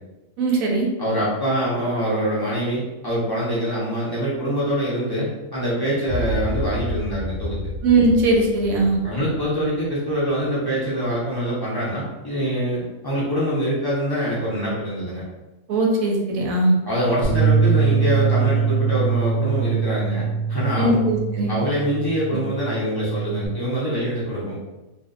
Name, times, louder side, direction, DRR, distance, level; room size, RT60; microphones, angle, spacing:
voice 1, 0.4-0.9 7.8-9.0 15.7-16.7 20.8-21.6, right 2 dB, 85° right, 0 dB, 1.0 m, -19 dB
voice 2, 1.0-7.6 9.0-15.2 16.8-21.0 21.5-24.6, equal, 40° left, -8 dB, 0.3 m, -24 dB
sound 1, 6.1-10.4, left 1 dB, 65° left, 0.7 m, -30 dB
Bass guitar, 17.2-23.5, right 5 dB, 40° right, 0.6 m, -22 dB
2.6 x 2.2 x 2.4 m, 1.1 s
omnidirectional pair, 1.4 m